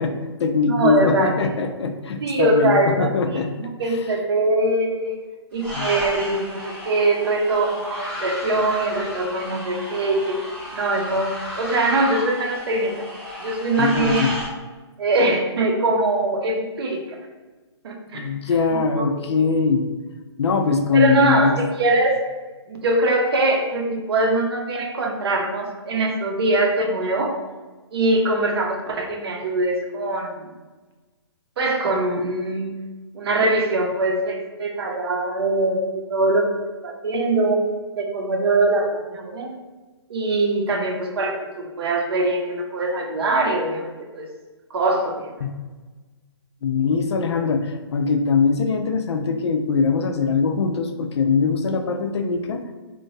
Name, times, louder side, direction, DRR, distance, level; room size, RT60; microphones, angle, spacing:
voice 1, 0.0-3.5 3.9-4.0 5.7-5.9 13.8-14.3 18.1-19.9 20.4-21.6 45.4-45.5 46.6-52.6, left 5 dB, 70° left, 6 dB, 0.4 m, -22 dB
voice 2, 0.7-1.3 2.2-5.1 5.5-10.4 10.7-13.0 13.4-14.3 15.0-17.2 17.8-18.3 18.7-19.4 20.9-21.5 21.8-22.2 22.7-27.4 27.9-30.5 31.6-32.7 33.1-36.5 36.8-37.6 37.9-39.5 40.1-43.9 44.1-44.3 44.7-45.3, right 2 dB, 60° right, 2 dB, 0.6 m, -22 dB
sound 1, 5.6-14.5, equal, 5° right, 0.6 m, -33 dB
3.0 x 2.2 x 2.6 m, 1.3 s
hypercardioid pair, 155°, 15 cm